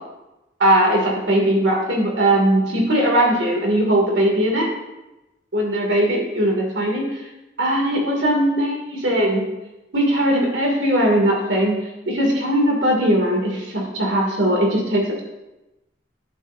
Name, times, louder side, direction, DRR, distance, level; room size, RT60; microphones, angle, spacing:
voice 1, 0.6-4.7 5.5-7.2 7.6-9.4 9.9-11.7 12.0-15.2, right 1 dB, 80° right, -1 dB, 2.6 m, -19 dB
11.0 x 8.2 x 2.7 m, 1.0 s
head